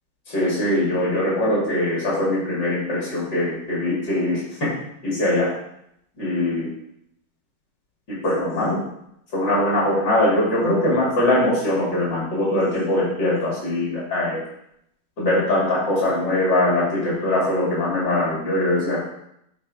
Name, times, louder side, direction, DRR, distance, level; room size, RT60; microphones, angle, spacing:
voice 1, 0.3-4.7 5.0-5.5 6.2-6.7 8.1-8.8 9.3-14.4 15.2-19.0, left 1 dB, 70° left, -6 dB, 2.9 m, -22 dB
8.5 x 4.3 x 4.8 m, 0.77 s
omnidirectional pair, 1.9 m